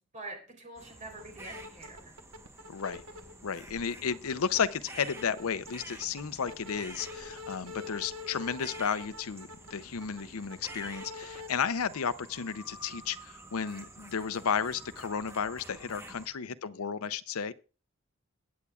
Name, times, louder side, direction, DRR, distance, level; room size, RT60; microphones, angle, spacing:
voice 1, 0.1-2.2 15.9-16.2, right 2 dB, 35° right, 3.7 m, -46 dB
sound 1, 0.8-16.3, right 1 dB, 10° right, 1.1 m, -50 dB
sound 2, 1.1-3.3 3.7-4.7 5.0-11.5, left 3 dB, 70° right, 1.2 m, -45 dB
voice 2, 2.7-3.0 3.4-17.5, left 6 dB, 85° left, 0.6 m, -33 dB
21.5 x 8.3 x 2.4 m
head